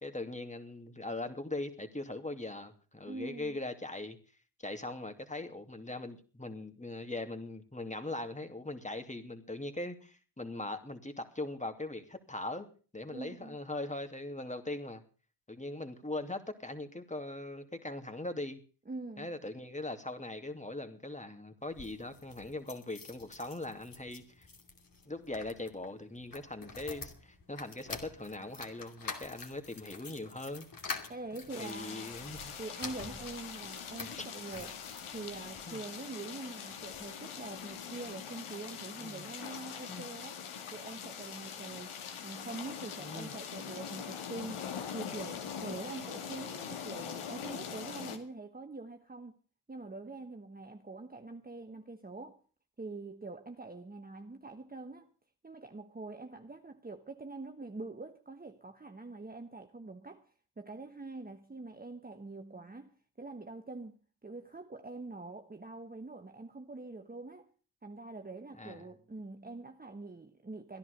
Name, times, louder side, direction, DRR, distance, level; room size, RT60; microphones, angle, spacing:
voice 1, 0.0-4.2 4.6-12.7 12.9-15.0 15.5-18.6 19.2-24.5 25.1-30.7 31.6-32.6 34.2-34.3 35.7-35.8 39.0-39.3 39.9-40.0 43.0-43.3 68.6-68.8, left 2 dB, 15° left, 2.6 m, -40 dB
voice 2, 3.0-3.6 13.1-13.6 18.9-19.3 31.1-32.2 32.6-40.4 40.7-49.3 49.7-52.4 52.8-55.1 55.4-60.3 60.6-67.5 67.8-70.8, right 3 dB, 20° right, 1.2 m, -45 dB
sound 1, 21.6-35.6 36.2-37.1 37.4-37.5 37.7-37.8, left 4 dB, 40° left, 2.8 m, -47 dB
sound 2, 31.5-48.2, left 7 dB, 75° left, 2.2 m, -43 dB
15.0 x 10.5 x 6.6 m
cardioid pair, 60°, 50 cm